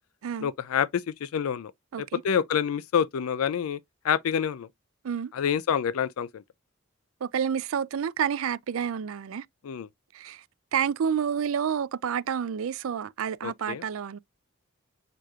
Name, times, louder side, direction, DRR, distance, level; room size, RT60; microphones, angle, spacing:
voice 1, 0.4-1.7 2.0-3.8 4.0-4.7 5.3-6.4 9.6-9.9 13.4-13.8, left 8 dB, 90° left, 0.4 m, -27 dB
voice 2, 7.2-9.5 10.1-10.4 10.7-14.2, right 7 dB, 75° right, 0.4 m, -29 dB
6.7 x 3.0 x 2.3 m
head